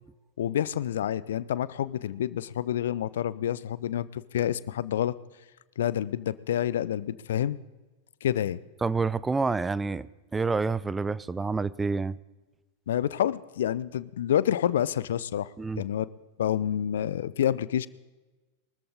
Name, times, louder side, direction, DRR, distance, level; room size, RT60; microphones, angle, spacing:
voice 1, 0.4-5.1 5.8-7.6 8.2-8.6 12.9-15.5 15.8-16.1 16.4-17.9, left 10 dB, 60° left, 19 dB, 0.5 m, -28 dB
voice 2, 8.8-10.1 10.3-12.1 15.6-15.8, right 4 dB, 10° right, 18 dB, 0.4 m, -28 dB
22.5 x 13.5 x 3.6 m, 1.2 s
figure-of-eight pair, 90°, 0 cm